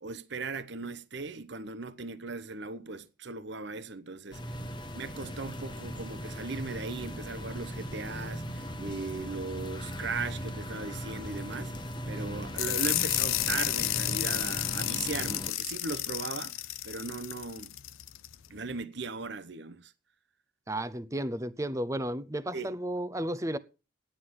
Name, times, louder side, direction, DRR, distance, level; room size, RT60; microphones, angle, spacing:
voice 1, 0.0-4.4 4.9-11.7 12.1-16.5 16.8-17.7 18.5-19.9 22.5-22.7, right 4 dB, 60° right, 0.9 m, -38 dB
sound 1, 4.3-15.5, equal, 25° left, 1.0 m, -39 dB
sound 2, 12.6-18.3, left 15 dB, 90° left, 0.6 m, -31 dB
voice 2, 20.7-23.6, right 1 dB, 15° right, 0.7 m, -33 dB
11.5 x 9.7 x 6.0 m
head